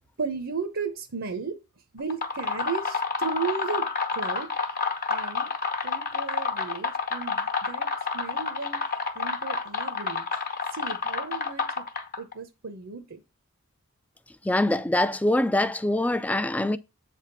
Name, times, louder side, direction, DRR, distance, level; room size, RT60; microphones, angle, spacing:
voice 1, 0.2-1.6 1.9-3.9 4.1-4.5 5.1-5.5 5.8-7.9 8.1-8.8 9.1-10.3 10.7-11.8 12.2-13.2, right 5 dB, 70° right, 0.9 m, -34 dB
sound 1, 2.0-12.3, left 4 dB, 45° left, 1.0 m, -29 dB
voice 2, 14.5-16.8, left 1 dB, 5° left, 0.3 m, -24 dB
8.1 x 3.6 x 5.7 m
head